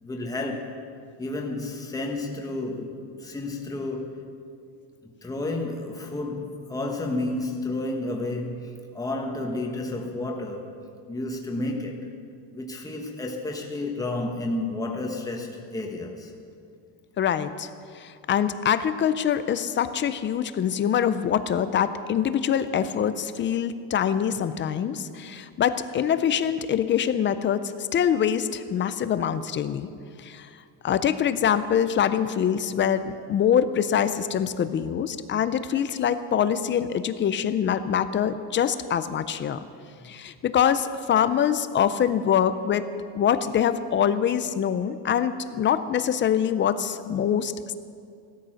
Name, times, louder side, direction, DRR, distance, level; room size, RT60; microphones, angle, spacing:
voice 1, 0.0-0.8 1.2-4.2 5.0-10.7 11.1-12.1 12.5-16.3, left 2 dB, 5° left, 1 dB, 1.3 m, -31 dB
voice 2, 17.2-17.7 17.9-29.9 30.2-30.5 30.8-39.6 40.0-42.9 43.1-47.7, left 8 dB, 25° left, 12 dB, 0.3 m, -24 dB
16.0 x 13.0 x 6.3 m, 2.3 s
cardioid pair, 160°, 48 cm